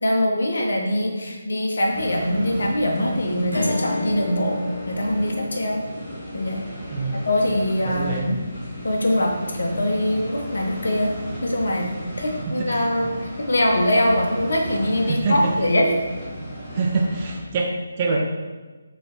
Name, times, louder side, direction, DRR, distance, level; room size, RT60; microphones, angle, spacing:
voice 1, 0.0-5.8 6.3-6.6 7.1-8.4 8.8-11.1 11.4-15.9, left 1 dB, 65° left, 1 dB, 1.2 m, -23 dB
sound 1, 1.9-17.4, equal, 20° left, 1.9 m, -36 dB
Strum, 3.5-8.1, left 2 dB, 85° left, 1.2 m, -34 dB
voice 2, 7.8-8.4 12.4-12.9 15.1-15.5 16.7-18.2, right 3 dB, 30° right, -1 dB, 1.0 m, -25 dB
6.9 x 3.4 x 4.4 m, 1.3 s
figure-of-eight pair, 150°, 0 cm